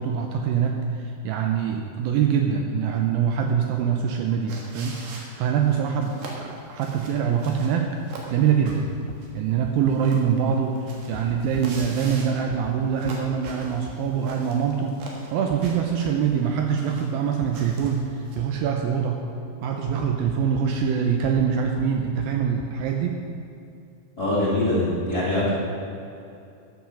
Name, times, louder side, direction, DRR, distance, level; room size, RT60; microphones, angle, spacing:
voice 1, 0.0-8.0 8.3-8.9 9.4-15.0 15.3-19.2 19.6-23.3, right 7 dB, 80° right, 3 dB, 2.2 m, -24 dB
sound 1, 4.5-18.4, right 2 dB, 60° right, 2.7 m, -43 dB
sound 2, 8.7-8.8 9.1-9.2 9.6-9.7 11.1-11.9 12.5-12.7 13.0-13.1 13.5-13.6 13.9-14.0 15.5-15.7 16.0-16.1 17.4-17.5 17.8-17.9 18.4-18.5 19.9-20.6 21.2-21.5 21.8-21.9 22.2-22.3 22.6-22.7, left 12 dB, 80° left, 2.4 m, -39 dB
voice 2, 24.2-25.5, left 1 dB, 30° left, -9 dB, 2.2 m, -23 dB
12.5 x 6.9 x 6.2 m, 2.7 s
omnidirectional pair, 4.6 m